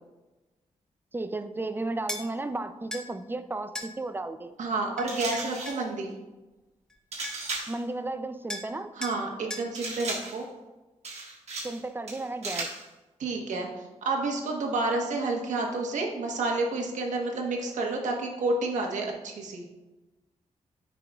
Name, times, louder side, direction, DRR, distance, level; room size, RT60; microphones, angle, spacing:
voice 1, 1.1-4.5 7.7-8.9 11.6-12.7, right 2 dB, 15° right, 10 dB, 0.4 m, -34 dB
sound 1, 2.1-2.3 2.9-3.1 3.7-3.9 5.0-5.8 6.9-7.0 7.2-7.6 8.5-8.7 9.0-9.2 9.5-9.7, left 1 dB, 5° left, 0.8 m, -37 dB
voice 2, 4.6-6.1 9.0-10.5 13.2-19.6, right 2 dB, 85° right, 1 dB, 1.2 m, -30 dB
sound 2, 5.1-5.8 7.1-7.8 9.7-10.4 11.0-11.8 12.1-12.8, right 3 dB, 60° right, 1.5 m, -36 dB
9.6 x 5.0 x 2.3 m, 1.1 s
wide cardioid pair, 110°, 12 cm